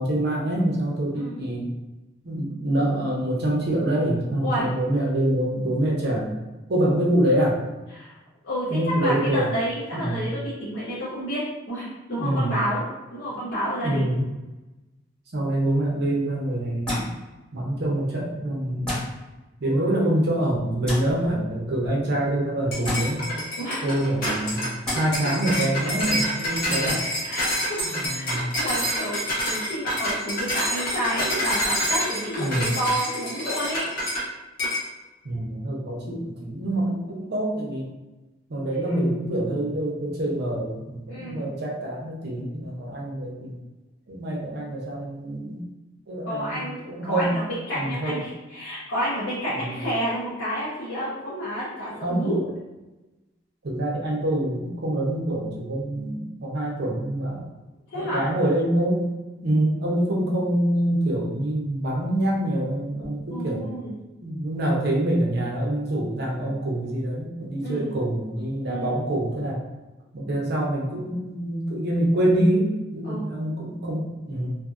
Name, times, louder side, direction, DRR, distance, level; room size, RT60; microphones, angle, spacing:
voice 1, 0.0-1.7 2.2-6.3 6.7-7.6 8.7-9.5 9.9-10.2 12.2-12.5 13.3-13.4 13.8-14.3 15.3-17.1 17.5-19.0 19.6-23.4 23.8-24.7 24.9-27.0 27.8-28.5 32.4-32.7 35.2-37.8 38.5-43.6 44.1-45.7 46.1-47.3 47.7-48.2 49.6-49.8 52.0-52.3 53.6-57.4 57.9-59.1 59.4-63.7 64.2-69.6 70.1-74.6, right 1 dB, 60° right, -3 dB, 0.7 m, -25 dB
voice 2, 8.4-12.8 13.1-14.1 19.6-20.1 23.6-23.8 26.6-26.7 27.3-28.2 28.6-33.9 38.8-39.1 41.1-41.5 46.3-52.5 57.9-58.2 63.3-63.9 67.6-67.9 68.6-68.9 73.0-73.3, equal, 80° left, -10 dB, 0.8 m, -30 dB
sound 1, 16.8-17.1 18.8-19.1 20.8-21.0 22.8-23.0 24.8-25.0 26.8-26.9, left 1 dB, 5° left, 1.2 m, -28 dB
sound 2, 22.7-34.3 34.6-34.9, equal, 50° left, 0.9 m, -27 dB
2.6 x 2.5 x 2.5 m, 1.1 s
head